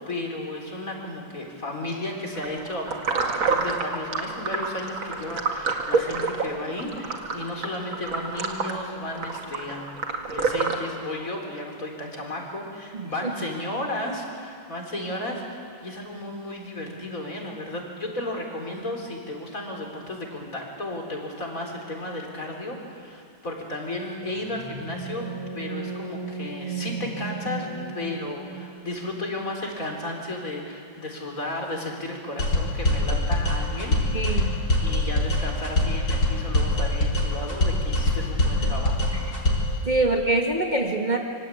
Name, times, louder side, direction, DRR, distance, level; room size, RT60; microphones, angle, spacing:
voice 1, 0.1-9.9 10.3-25.3 25.5-27.7 27.9-39.1 39.5-39.7, left 1 dB, 45° left, 1 dB, 4.6 m, -34 dB
sound 1, 2.4-10.8, right 4 dB, 85° right, 2.9 m, -28 dB
sound 2, 24.3-28.8, right 4 dB, 15° left, 6.5 m, -35 dB
sound 3, 32.4-39.8, left 1 dB, 60° left, 5.0 m, -23 dB
voice 2, 34.1-34.6 38.6-38.8 39.9-41.2, right 2 dB, 25° right, 1 dB, 1.7 m, -24 dB
27.5 x 25.0 x 8.6 m, 2.3 s
omnidirectional pair, 2.1 m